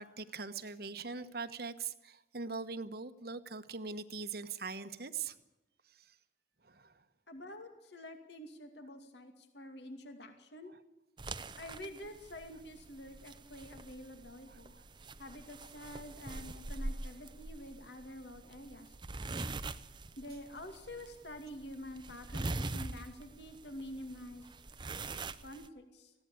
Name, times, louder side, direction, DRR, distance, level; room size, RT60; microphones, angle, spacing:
voice 1, 0.0-5.3 6.6-6.9 14.5-14.6, right 4 dB, 55° right, 11 dB, 1.2 m, -41 dB
voice 2, 7.3-10.7 11.6-14.8 15.2-18.9 20.2-24.4 25.4-26.1, left 1 dB, 65° left, 6 dB, 2.4 m, -48 dB
sound 1, 11.2-25.7, right 2 dB, 25° right, 0.7 m, -44 dB
20.0 x 16.0 x 8.5 m, 0.95 s
head